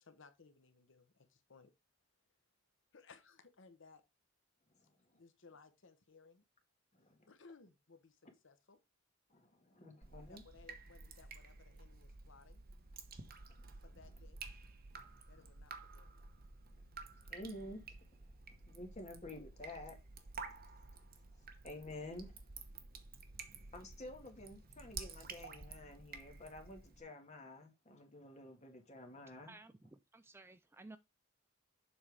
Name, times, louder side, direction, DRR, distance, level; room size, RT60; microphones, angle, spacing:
voice 1, 0.0-1.7 2.9-4.0 5.1-6.4 7.3-8.8 10.1-12.6 13.8-14.4 15.3-16.2, left 4 dB, 65° left, 0.9 m, -62 dB
voice 2, 6.9-7.3 9.3-10.4 13.5-13.7 14.9-15.1 16.8-16.9 17.1-18.3 18.6-20.0 21.3-22.4 23.7-29.5, left 1 dB, 35° left, 1.8 m, -51 dB
Drip, 10.0-27.0, right 4 dB, 45° right, 1.1 m, -52 dB
voice 3, 29.5-31.0, right 2 dB, 10° right, 0.3 m, -56 dB
7.2 x 4.3 x 4.9 m
head